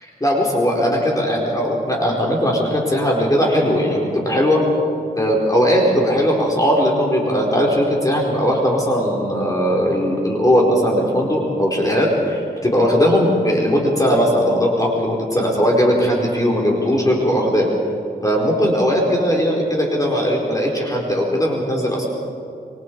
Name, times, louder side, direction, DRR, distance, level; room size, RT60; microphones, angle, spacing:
voice 1, 0.2-4.6 5.1-17.7 18.2-22.1, equal, 20° left, -2 dB, 4.4 m, -18 dB
27.5 x 23.5 x 4.7 m, 2.5 s
wide cardioid pair, 80°, 17 cm